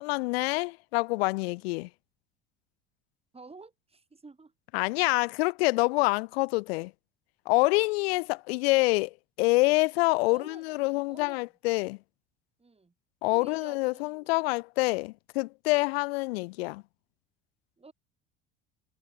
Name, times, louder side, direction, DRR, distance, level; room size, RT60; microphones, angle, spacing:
voice 1, 0.0-1.9 4.7-6.9 7.5-12.0 13.2-16.8, left 24 dB, 70° left, 0.5 m, -26 dB
voice 2, 3.3-4.5 7.5-7.7 10.2-10.7 11.1-11.4 12.6-12.9 13.3-14.3 17.8-17.9, right 3 dB, 20° right, 6.1 m, -50 dB
hypercardioid pair, 70°, 32 cm